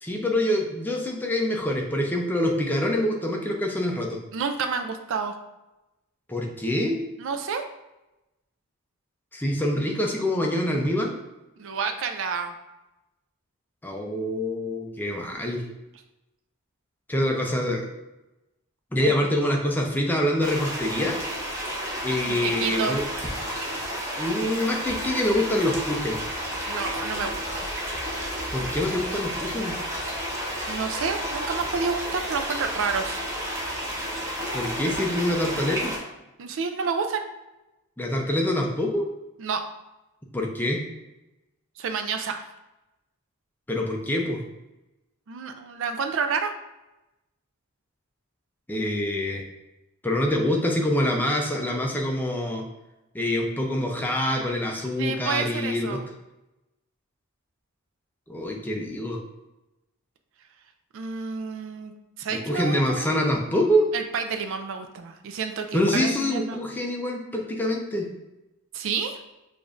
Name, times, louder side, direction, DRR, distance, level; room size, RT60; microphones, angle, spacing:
voice 1, 0.0-4.2 6.3-7.0 9.3-11.1 13.8-15.6 17.1-17.9 18.9-21.2 22.0-23.0 24.2-26.2 28.5-29.8 34.5-35.9 38.0-39.1 40.3-40.8 43.7-44.4 48.7-49.4 50.0-52.6 53.1-56.0 58.3-59.2 62.5-63.9 65.7-68.1, left 1 dB, 10° left, 0 dB, 0.5 m, -25 dB
voice 2, 4.3-5.4 7.2-7.6 11.6-12.5 17.1-17.4 19.0-19.1 22.3-23.0 26.7-27.7 30.7-33.2 36.4-37.2 39.4-39.6 41.8-42.4 45.3-46.5 55.0-56.0 60.9-61.9 62.2-63.1 63.9-66.6 68.7-69.2, right 5 dB, 60° right, 6 dB, 0.4 m, -29 dB
sound 1, 20.4-36.0, equal, 15° right, 0.9 m, -31 dB
6.7 x 2.5 x 2.5 m, 0.97 s
head